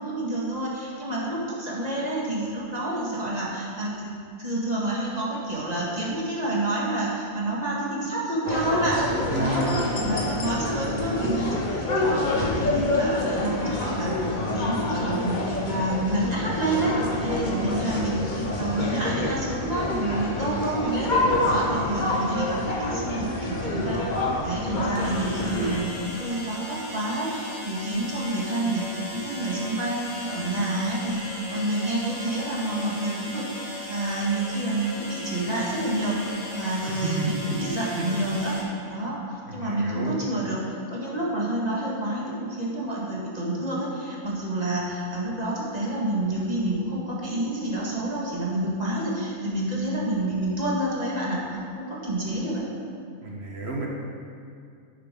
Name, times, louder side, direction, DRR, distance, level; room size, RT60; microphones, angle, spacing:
voice 1, 0.0-4.1 4.4-9.0 9.3-38.5 38.9-40.6 40.9-52.6, right 1 dB, 30° right, -5 dB, 1.9 m, -28 dB
sound 1, 8.5-25.8, left 2 dB, 35° left, 1.3 m, -27 dB
voice 2, 9.3-10.0 36.9-37.3 37.9-38.1 39.5-40.2 53.2-53.9, right 2 dB, 50° right, -1 dB, 1.5 m, -30 dB
sound 2, 22.9-23.0 24.9-38.6, left 1 dB, 60° left, 2.3 m, -37 dB
10.5 x 9.3 x 3.8 m, 2.3 s
omnidirectional pair, 1.5 m